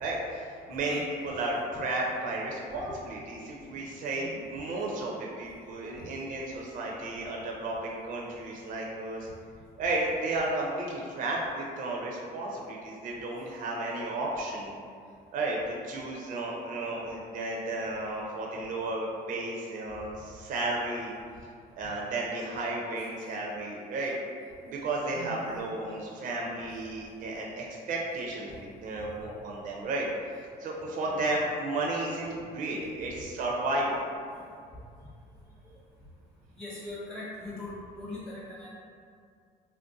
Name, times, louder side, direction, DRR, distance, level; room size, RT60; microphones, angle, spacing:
voice 1, 0.0-9.3 9.8-14.8 15.3-21.1 21.8-24.1 24.6-30.1 30.6-34.0, right 2 dB, 50° right, -2 dB, 0.4 m, -33 dB
voice 2, 4.1-4.4 25.1-25.4 31.0-31.2 34.5-34.6 36.5-38.7, left 1 dB, 5° left, -9 dB, 0.6 m, -41 dB
2.5 x 2.1 x 3.7 m, 2.2 s
cardioid pair, 110°, 17 cm